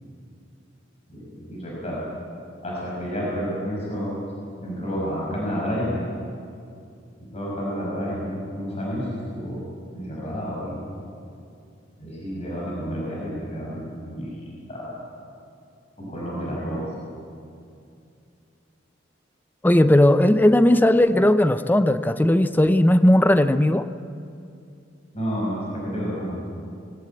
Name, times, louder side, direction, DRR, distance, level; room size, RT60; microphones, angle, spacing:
voice 1, 1.1-2.0 2.6-4.2 4.6-6.0 7.2-9.6 9.9-10.8 12.0-13.8 14.1-14.3 14.7-14.9 16.0-16.8 25.1-26.4, equal, 35° left, -4 dB, 6.0 m, -30 dB
voice 2, 19.6-23.9, left 1 dB, 10° left, 11 dB, 0.5 m, -17 dB
21.0 x 17.0 x 8.6 m, 2.5 s
head